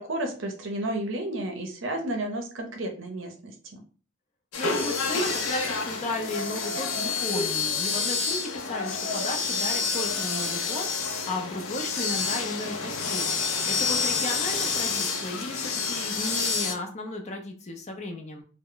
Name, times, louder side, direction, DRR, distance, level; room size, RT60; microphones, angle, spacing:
voice 1, 0.0-3.8, right 1 dB, 60° right, 3 dB, 0.6 m, -32 dB
sound 1, 4.5-16.7, left 4 dB, 90° left, 0.5 m, -28 dB
voice 2, 4.6-18.4, left 2 dB, 30° left, 3 dB, 0.5 m, -35 dB
2.1 x 2.0 x 3.7 m, 0.39 s
head